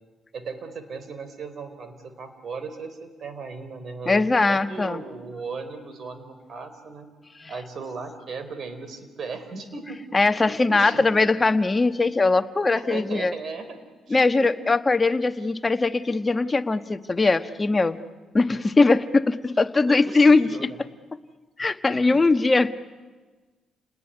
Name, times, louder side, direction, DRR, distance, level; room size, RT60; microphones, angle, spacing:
voice 1, 0.3-7.1 7.5-10.0 10.3-11.2 12.7-13.8 14.1-14.7 19.9-20.8 21.9-22.2, right 4 dB, 55° right, 10 dB, 4.2 m, -37 dB
voice 2, 4.1-5.0 10.1-13.3 14.1-18.0 18.3-20.7 21.6-22.7, left 3 dB, 25° left, 9 dB, 1.3 m, -20 dB
29.5 x 20.0 x 10.0 m, 1.3 s
cardioid pair, 90°, 0 cm